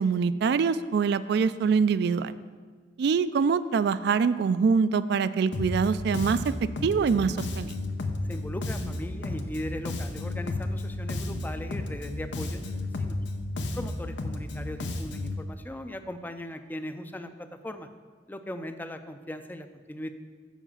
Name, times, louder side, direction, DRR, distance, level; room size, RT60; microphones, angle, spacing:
voice 1, 0.0-2.3 3.0-7.8, right 5 dB, 65° right, 15 dB, 0.3 m, -24 dB
Bass guitar, 5.5-15.4, left 2 dB, 80° left, 0.7 m, -33 dB
voice 2, 8.2-13.2 13.7-17.9 18.3-20.1, left 1 dB, 10° left, 9 dB, 0.4 m, -39 dB
7.2 x 4.9 x 7.1 m, 1.5 s
head